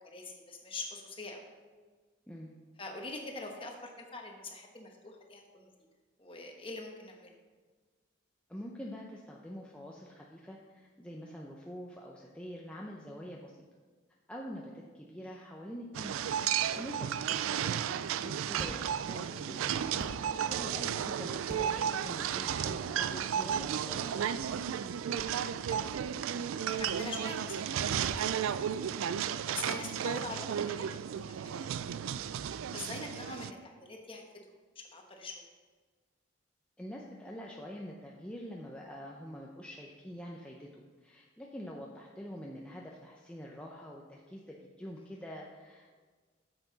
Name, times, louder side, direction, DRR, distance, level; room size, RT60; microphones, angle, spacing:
voice 1, 0.0-1.4 2.8-5.7 6.2-7.3 15.2-15.4 22.6-22.7 25.2-25.9 26.6-27.8 28.2-28.6 29.5-31.4 31.7-32.0 32.7-34.2 34.7-35.4, left 3 dB, 25° left, 2 dB, 1.1 m, -44 dB
voice 2, 8.5-13.5 14.3-16.1 16.7-20.1 20.5-24.3 36.8-46.1, equal, 5° left, -2 dB, 0.6 m, -45 dB
sound 1, 15.9-33.5, right 8 dB, 90° right, 0.3 m, -33 dB
sound 2, 17.5-28.3, right 1 dB, 45° right, 1.0 m, -49 dB
9.2 x 7.0 x 4.0 m, 1.4 s
head